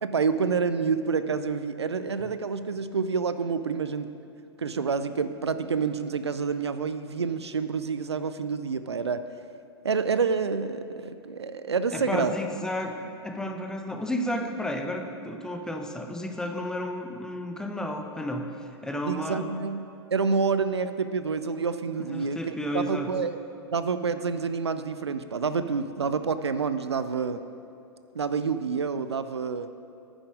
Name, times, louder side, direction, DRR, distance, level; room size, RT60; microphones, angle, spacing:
voice 1, 0.0-4.1 4.6-9.2 9.8-12.4 19.0-23.4 23.7-27.4 28.1-29.7, right 5 dB, 75° right, 11 dB, 0.5 m, -28 dB
voice 2, 11.9-12.9 13.2-18.5 18.8-19.5 22.1-23.1, left 1 dB, 5° left, 4 dB, 0.9 m, -32 dB
11.5 x 9.9 x 5.2 m, 2.6 s
figure-of-eight pair, 100°, 14 cm